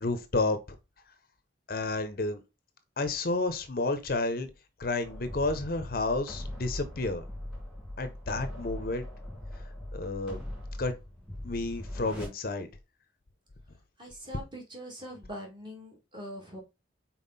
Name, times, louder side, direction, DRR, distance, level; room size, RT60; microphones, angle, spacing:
voice 1, 0.0-0.6 1.7-2.4 3.0-4.5 4.8-7.2 8.0-9.1 9.9-10.4 10.8-10.9 11.4-12.7, left 2 dB, 50° left, 0.7 m, -30 dB
sound 1, 5.0-12.3, left 1 dB, 5° right, 2.4 m, -41 dB
voice 2, 14.0-16.6, equal, 25° right, 2.2 m, -43 dB
5.5 x 4.4 x 4.0 m
head